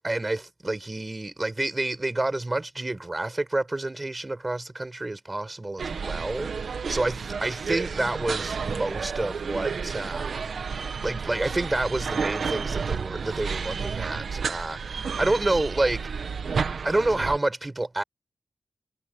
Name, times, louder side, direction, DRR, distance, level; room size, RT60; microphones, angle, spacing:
voice 1, 0.0-6.5 6.9-16.3 16.8-18.0, right 2 dB, 20° right, 7.4 m, -29 dB
sound 1, 5.8-17.4, right 5 dB, 75° right, 1.7 m, -31 dB
wide cardioid pair, 180°, 0 cm